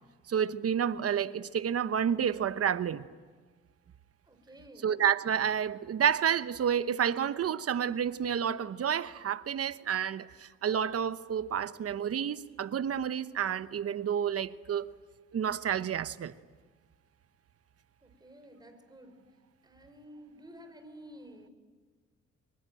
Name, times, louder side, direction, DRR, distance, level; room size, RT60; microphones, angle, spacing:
voice 1, 0.3-3.1 4.8-14.9 15.3-16.3, right 8 dB, 50° right, 13 dB, 1.0 m, -30 dB
voice 2, 4.3-4.9 18.0-19.2 19.6-21.5, equal, 15° right, 7 dB, 5.0 m, -52 dB
25.0 x 23.0 x 9.1 m, 1.5 s
cardioid pair, 90°, 30 cm